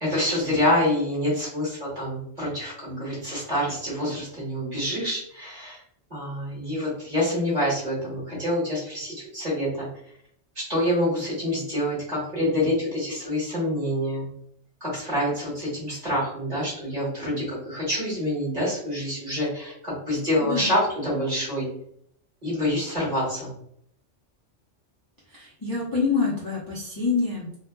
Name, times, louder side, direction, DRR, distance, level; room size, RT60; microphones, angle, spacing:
voice 1, 0.0-5.8 6.1-9.9 10.7-14.3 14.8-21.7 22.4-23.5, left 1 dB, 35° right, -7 dB, 1.4 m, -26 dB
voice 2, 20.4-20.7 25.3-27.6, left 4 dB, 20° left, -8 dB, 0.6 m, -26 dB
2.8 x 2.4 x 2.2 m, 0.70 s
omnidirectional pair, 1.2 m